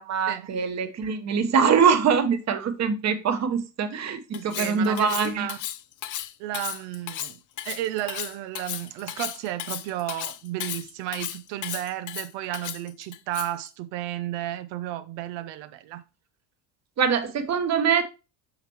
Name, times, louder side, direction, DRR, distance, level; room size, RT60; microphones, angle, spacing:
voice 1, 0.0-5.5 17.0-18.0, right 6 dB, 35° right, 1.1 m, -23 dB
Cutlery silverware, 4.3-13.7, left 12 dB, 45° left, 0.6 m, -35 dB
voice 2, 4.3-5.6 6.4-16.0, right 14 dB, 85° right, 0.7 m, -33 dB
6.7 x 5.9 x 3.0 m
cardioid pair, 115°, 45 cm